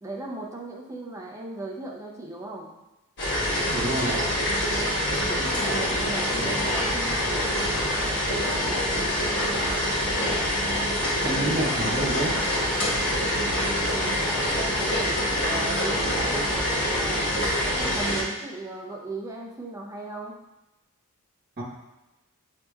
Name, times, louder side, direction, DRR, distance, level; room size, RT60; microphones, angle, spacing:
voice 1, 0.0-2.7 5.2-9.9 13.9-17.2 17.6-20.3, right 2 dB, 15° right, -2 dB, 0.6 m, -37 dB
sound 1, 3.2-18.2, equal, 55° left, 1.3 m, -25 dB
voice 2, 3.7-4.2 11.2-12.4 21.6-21.7, right 1 dB, 45° right, -5 dB, 1.2 m, -28 dB
6.6 x 2.8 x 2.3 m, 1.0 s
head